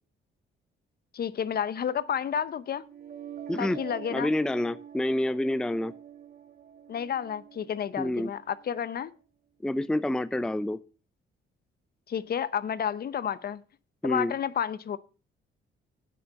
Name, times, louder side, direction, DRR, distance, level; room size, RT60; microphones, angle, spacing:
voice 1, 1.1-2.8 3.6-4.3 6.9-9.1 12.1-13.6 14.0-15.0, left 8 dB, 50° left, 0.8 m, -31 dB
sound 1, 2.8-8.8, right 9 dB, 50° right, 1.8 m, -46 dB
voice 2, 3.5-3.8 4.1-5.9 8.0-8.3 9.6-10.8 14.0-14.3, left 1 dB, 5° left, 0.5 m, -28 dB
9.4 x 6.1 x 7.0 m
cardioid pair, 90°, 20 cm